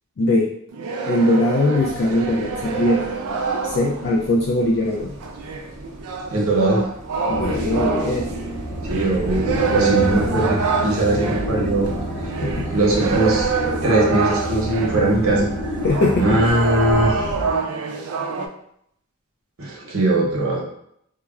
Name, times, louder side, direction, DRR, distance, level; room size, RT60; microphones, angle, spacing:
voice 1, 0.2-0.5 1.1-3.1 3.6-5.2 7.3-8.3 11.2-11.3 12.4-12.7 15.8-16.4, left 1 dB, 50° left, -3 dB, 0.3 m, -20 dB
sound 1, 0.7-4.2 5.2-15.1 15.8-18.5, right 5 dB, 85° right, 0.4 m, -26 dB
Bus, 1.7-17.3, equal, 30° right, 0.6 m, -39 dB
voice 2, 6.3-6.8 8.9-11.9 12.2-12.3 12.7-13.5 13.8-15.8 16.2-17.3 19.6-20.6, right 2 dB, 65° right, -3 dB, 0.9 m, -20 dB
sound 2, 7.3-17.5, equal, 75° left, 0.7 m, -28 dB
3.2 x 2.2 x 2.3 m, 0.70 s
head